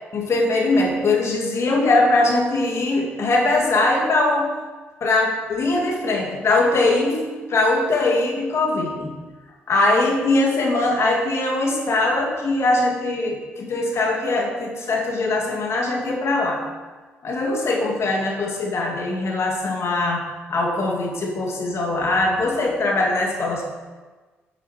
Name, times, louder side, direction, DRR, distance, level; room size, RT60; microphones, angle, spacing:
voice 1, 0.1-4.5 5.0-9.1 9.7-16.6 17.2-20.2 20.5-23.6, left 2 dB, 50° left, -1 dB, 2.6 m, -21 dB
9.8 x 8.2 x 4.5 m, 1.3 s
hypercardioid pair, 45°, 6 cm